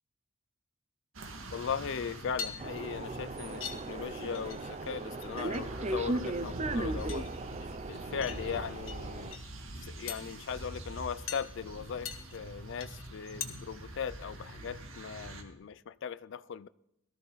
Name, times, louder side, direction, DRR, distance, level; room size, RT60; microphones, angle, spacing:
sound 1, 1.1-15.4, right 1 dB, 85° right, 1.8 m, -45 dB
voice 1, 1.5-7.3 7.9-9.4 9.8-16.7, left 7 dB, 65° left, 0.4 m, -38 dB
sound 2, 2.3-3.1 3.6-3.8 4.1-4.9 5.1-5.6 5.9-6.6 7.0-7.8 8.2-9.0 9.2-9.4 10.1-10.4 11.3-11.5 12.0-12.4 12.8-13.1 13.4-13.5, left 8 dB, 85° left, 1.5 m, -41 dB
sound 3, 2.6-9.4, right 2 dB, 35° right, 0.6 m, -37 dB
18.0 x 13.0 x 4.0 m
head